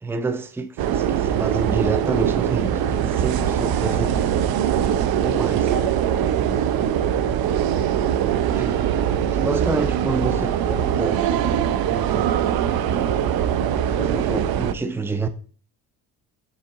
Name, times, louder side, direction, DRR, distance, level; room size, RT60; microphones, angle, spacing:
voice 1, 0.0-4.2 5.2-5.7 8.5-8.9 9.3-11.3 11.8-12.4 12.9-13.3 14.0-15.3, right 3 dB, 5° right, 0.6 m, -28 dB
sound 1, 0.8-14.7, right 9 dB, 55° right, 0.7 m, -22 dB
voice 2, 3.8-4.7 5.5-7.0, right 8 dB, 75° right, 1.1 m, -33 dB
7.1 x 4.1 x 3.7 m
hypercardioid pair, 60°, 43 cm